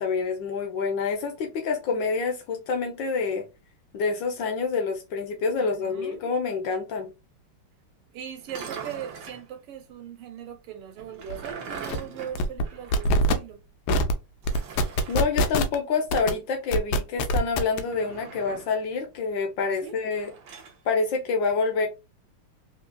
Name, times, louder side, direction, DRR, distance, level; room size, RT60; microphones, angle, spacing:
voice 1, 0.0-3.5 3.9-7.1 15.1-20.3 20.8-21.9, left 4 dB, 65° left, 1.3 m, -27 dB
voice 2, 5.6-6.2 8.1-13.6 19.6-20.0, right 9 dB, 85° right, 1.8 m, -40 dB
sound 1, 8.4-9.5 11.0-13.2 13.5-13.6 14.4-15.3 17.8-18.8 20.1-20.8, right 6 dB, 65° right, 1.2 m, -41 dB
sound 2, 11.3-11.4 11.7-12.0 12.4-12.6 12.9-13.3 13.9-14.1 14.5-15.8 16.1-16.3 16.7-17.8, left 1 dB, 85° left, 1.6 m, -23 dB
3.8 x 3.3 x 2.2 m
omnidirectional pair, 2.4 m